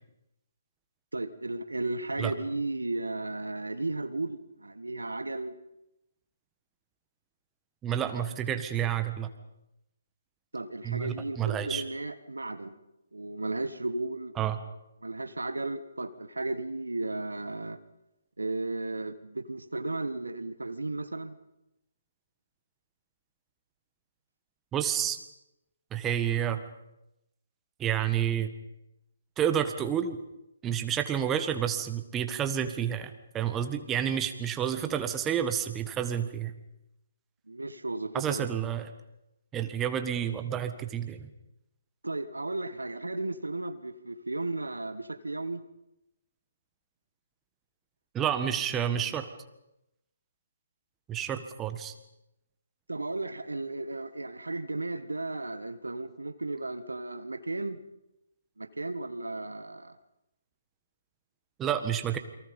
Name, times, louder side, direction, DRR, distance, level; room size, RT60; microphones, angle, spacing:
voice 1, 1.1-5.5 10.5-12.7 13.1-14.3 15.0-17.8 18.4-21.3 37.5-38.5 42.0-45.6 52.9-57.8 58.6-60.0, right 2 dB, 85° right, 12 dB, 1.5 m, -34 dB
voice 2, 7.8-9.3 10.8-11.8 14.4-14.6 24.7-25.2 25.9-26.6 27.8-28.5 29.4-30.2 30.6-36.5 38.1-38.9 39.5-41.3 48.1-49.3 51.1-51.9 61.6-62.2, right 9 dB, 15° right, 8 dB, 1.6 m, -29 dB
29.0 x 23.5 x 5.4 m, 0.88 s
figure-of-eight pair, 140°, 0 cm